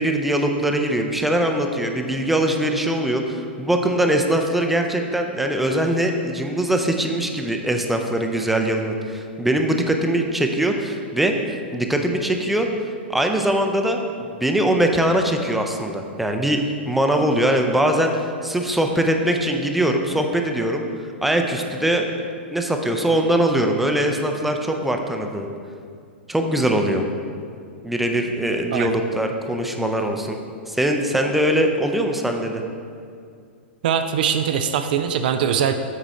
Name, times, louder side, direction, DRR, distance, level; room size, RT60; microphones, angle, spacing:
voice 1, 0.0-11.3 11.7-12.7 13.1-16.6 16.9-18.1 18.4-20.8 21.2-22.1 22.5-25.5 26.3-27.0 27.8-30.4 30.7-32.6, right 1 dB, ahead, 3 dB, 0.5 m, -21 dB
voice 2, 33.8-35.7, right 8 dB, 50° right, 8 dB, 0.4 m, -21 dB
8.4 x 4.9 x 4.2 m, 2.2 s
figure-of-eight pair, 100°, 6 cm